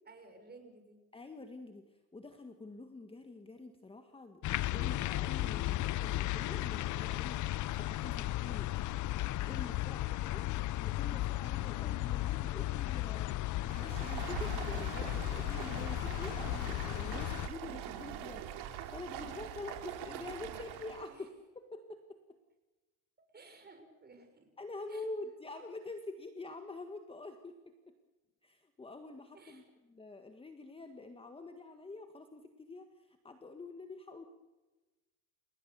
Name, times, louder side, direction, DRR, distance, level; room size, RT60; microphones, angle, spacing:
voice 1, 0.1-1.0 9.9-10.5 19.2-19.4 21.1-21.3 23.2-24.5 24.9-25.1 29.3-29.7, right 3 dB, 25° right, 6 dB, 6.2 m, -57 dB
voice 2, 1.1-1.9 2.1-7.4 7.8-8.8 9.4-10.4 10.7-13.3 13.7-18.6 18.9-21.3 21.7-22.2 24.6-27.9 28.4-34.3, left 2 dB, 15° left, 6 dB, 1.7 m, -46 dB
sound 1, 4.4-17.5, left 16 dB, 45° left, 0.7 m, -35 dB
Stream, 13.6-21.1, right 10 dB, 70° right, 3.8 m, -43 dB
30.0 x 17.5 x 7.0 m, 1.2 s
cardioid pair, 120°, 41 cm